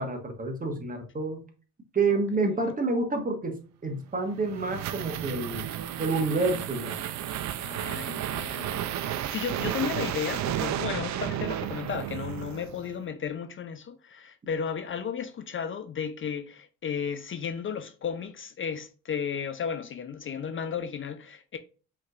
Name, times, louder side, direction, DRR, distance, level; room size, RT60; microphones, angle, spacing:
voice 1, 0.0-1.4 1.9-5.6 6.0-7.0, right 3 dB, 30° right, 1.3 m, -28 dB
sound 1, 4.1-13.0, right 11 dB, 65° right, 0.5 m, -33 dB
voice 2, 7.6-21.6, left 7 dB, 40° left, 0.5 m, -34 dB
5.4 x 3.2 x 2.4 m
cardioid pair, 90°, 30 cm